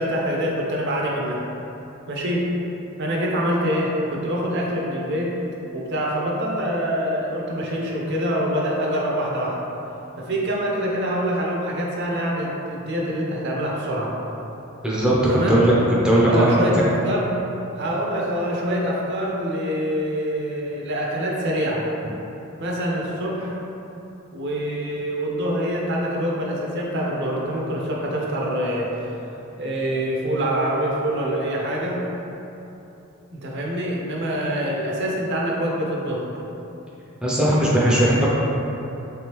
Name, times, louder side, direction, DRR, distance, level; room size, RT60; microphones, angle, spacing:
voice 1, 0.0-1.4 2.1-2.5 3.0-5.4 5.7-9.6 10.2-14.1 15.3-15.6 16.2-17.3 17.7-21.9 22.6-23.6 24.3-28.9 29.6-32.0 33.3-36.2, equal, 55° right, -2 dB, 0.5 m, -25 dB
voice 2, 14.8-15.2 15.5-15.7 16.0-16.6 37.2-38.3, right 1 dB, 5° right, -7 dB, 0.4 m, -18 dB
3.6 x 3.4 x 2.9 m, 3.0 s
head